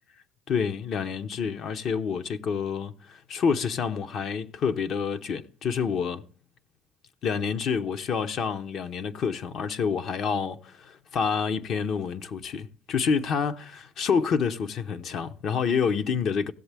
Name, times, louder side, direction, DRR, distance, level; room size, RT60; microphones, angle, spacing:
voice 1, 0.5-6.2 7.2-16.5, left 6 dB, 55° left, 0.7 m, -28 dB
16.5 x 7.2 x 3.4 m
supercardioid pair, 90°, 0 cm